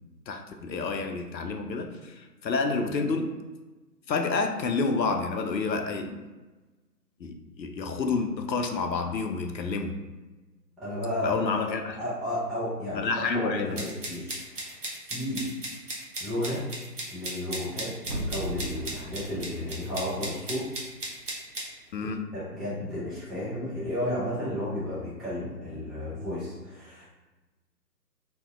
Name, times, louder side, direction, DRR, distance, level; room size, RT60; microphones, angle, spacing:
voice 1, 0.3-3.3 4.1-6.2 7.2-9.9 11.2-12.0 12.9-13.8 21.9-22.3, left 4 dB, 85° left, 4 dB, 0.6 m, -29 dB
voice 2, 10.8-14.8 15.1-15.5 16.2-16.6 17.1-17.9 18.3-20.7 22.0-27.0, left 1 dB, ahead, -12 dB, 0.4 m, -33 dB
sound 1, 13.8-21.7, right 2 dB, 45° right, 0.8 m, -36 dB
sound 2, 18.0-20.9 21.3-21.4, right 1 dB, 85° right, 1.0 m, -38 dB
2.6 x 2.1 x 3.5 m, 1.2 s
figure-of-eight pair, 140°, 50 cm